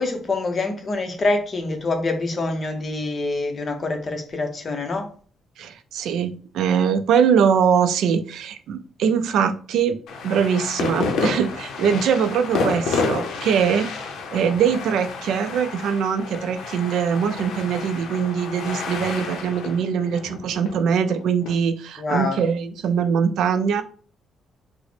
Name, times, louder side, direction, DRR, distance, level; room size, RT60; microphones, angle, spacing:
voice 1, 0.0-5.1 22.0-22.4, left 3 dB, 40° left, 0.8 m, -25 dB
voice 2, 5.6-10.0 10.2-13.9 14.3-23.8, right 7 dB, 80° right, 0.4 m, -22 dB
sound 1, 10.1-21.5, left 4 dB, 75° left, 0.6 m, -30 dB
3.6 x 2.0 x 3.2 m
cardioid pair, 90°, 0 cm